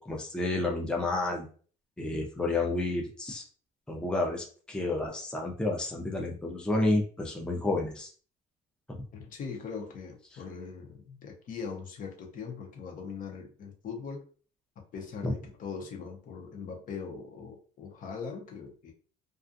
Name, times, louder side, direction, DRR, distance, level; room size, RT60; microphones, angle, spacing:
voice 1, 0.0-1.5 2.0-3.5 3.9-8.1 8.9-9.0 15.2-15.3, left 2 dB, 5° left, 0 dB, 0.5 m, -30 dB
voice 2, 9.1-14.2 14.8-18.9, left 5 dB, 55° left, 2 dB, 0.8 m, -41 dB
2.4 x 2.3 x 2.5 m, 0.41 s
cardioid pair, 110°, 17 cm